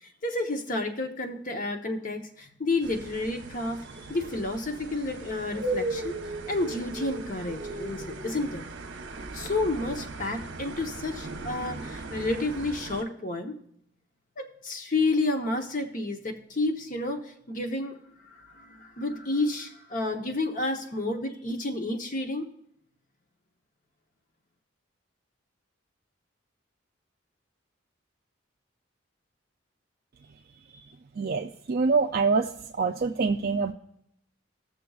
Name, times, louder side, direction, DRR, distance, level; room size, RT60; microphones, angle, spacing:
voice 1, 0.0-6.2 6.5-8.7 9.3-13.6 14.4-18.0 18.2-22.4, left 2 dB, 40° left, 5 dB, 0.9 m, -30 dB
sound 1, 2.8-13.0, right 2 dB, 60° right, 0.9 m, -37 dB
voice 2, 31.2-32.5 32.8-33.7, right 4 dB, 45° right, 3 dB, 0.4 m, -25 dB
19.5 x 6.8 x 2.4 m, 0.73 s
head